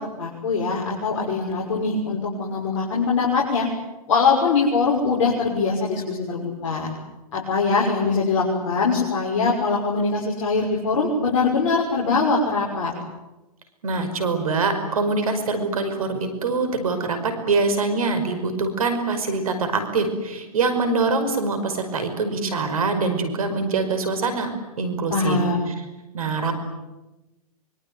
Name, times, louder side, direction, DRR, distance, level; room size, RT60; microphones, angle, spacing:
voice 1, 0.2-3.7 4.1-6.9 7.3-12.9 25.1-25.6, left 4 dB, 55° left, -2 dB, 6.3 m, -22 dB
voice 2, 13.8-24.5 24.8-25.4 25.7-25.8 26.1-26.5, right 3 dB, 65° right, 9 dB, 5.4 m, -24 dB
25.0 x 24.5 x 9.6 m, 1.1 s
figure-of-eight pair, 115°, 19 cm